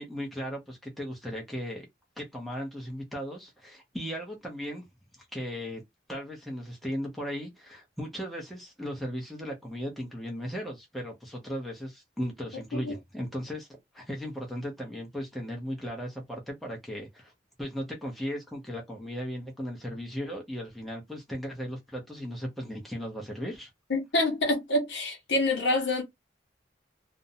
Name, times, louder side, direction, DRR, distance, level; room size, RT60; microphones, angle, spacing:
voice 1, 0.0-1.9 2.2-4.8 5.2-5.8 6.1-17.3 17.6-23.7, equal, ahead, 0.7 m, -37 dB
voice 2, 23.9-26.0, left 2 dB, 70° left, 1.1 m, -26 dB
2.5 x 2.1 x 2.6 m
head